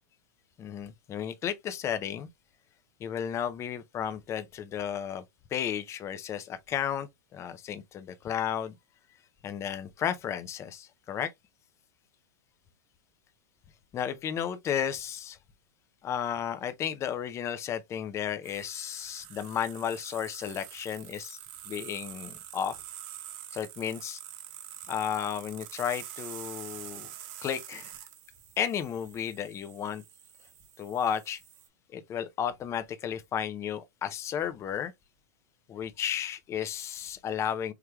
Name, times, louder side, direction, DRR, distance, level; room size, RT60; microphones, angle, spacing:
voice 1, 0.6-2.3 3.0-5.2 5.5-8.8 9.4-11.3 13.9-15.4 16.0-21.4 21.7-22.8 23.5-24.2 24.9-27.1 27.4-28.0 28.6-30.0 30.8-31.4 31.9-34.9 35.7-37.7, left 9 dB, 25° left, 0.5 m, -33 dB
sound 1, 18.4-31.7, right 12 dB, 50° right, 1.0 m, -46 dB
4.6 x 3.3 x 2.2 m
hypercardioid pair, 125°, 11 cm